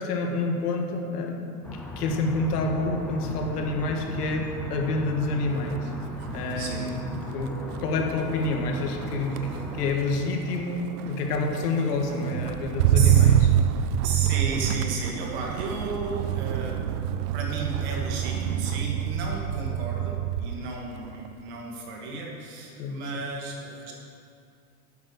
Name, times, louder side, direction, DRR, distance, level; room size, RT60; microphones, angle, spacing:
voice 1, 0.0-5.9 6.3-13.5 22.8-23.0, left 2 dB, 85° left, 2 dB, 2.0 m, -28 dB
sound 1, 1.6-9.9, left 1 dB, 5° left, 0.6 m, -38 dB
Motor vehicle (road), 5.6-5.9 6.2-20.7 21.0-21.5, right 11 dB, 75° right, 0.6 m, -27 dB
voice 2, 6.5-6.9 9.3-9.6 12.9-13.3 14.0-16.9 17.3-23.9, right 3 dB, 45° right, -1 dB, 2.4 m, -34 dB
10.5 x 8.3 x 6.6 m, 2.5 s
supercardioid pair, 170°, 45 cm